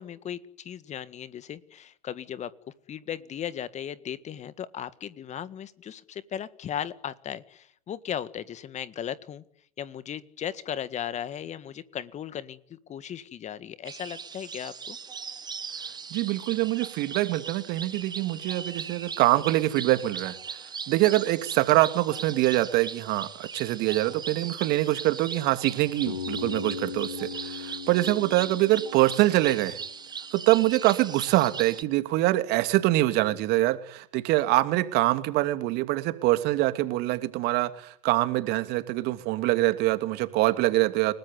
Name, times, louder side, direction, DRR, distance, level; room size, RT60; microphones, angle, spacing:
voice 1, 0.0-2.5 2.9-9.4 9.8-15.0, left 9 dB, 35° left, 1.8 m, -36 dB
sound 1, 13.8-31.8, right 6 dB, 20° right, 1.5 m, -39 dB
voice 2, 16.1-20.3 20.9-29.8 30.3-41.1, right 17 dB, 55° right, 2.8 m, -24 dB
Bass guitar, 26.1-30.0, left 6 dB, 85° left, 6.1 m, -38 dB
30.0 x 19.5 x 9.7 m
hypercardioid pair, 90°, 20 cm